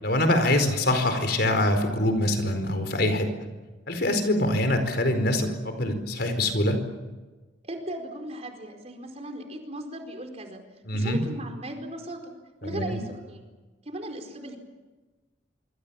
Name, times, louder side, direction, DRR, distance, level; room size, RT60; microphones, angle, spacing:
voice 1, 0.0-3.3 3.9-6.8 10.8-11.2 12.6-13.0, left 1 dB, 55° left, 7 dB, 4.6 m, -24 dB
voice 2, 7.6-10.6 10.9-12.2 12.6-13.5 13.8-14.6, right 1 dB, 35° right, 4 dB, 4.5 m, -37 dB
26.0 x 26.0 x 7.2 m, 1.2 s
head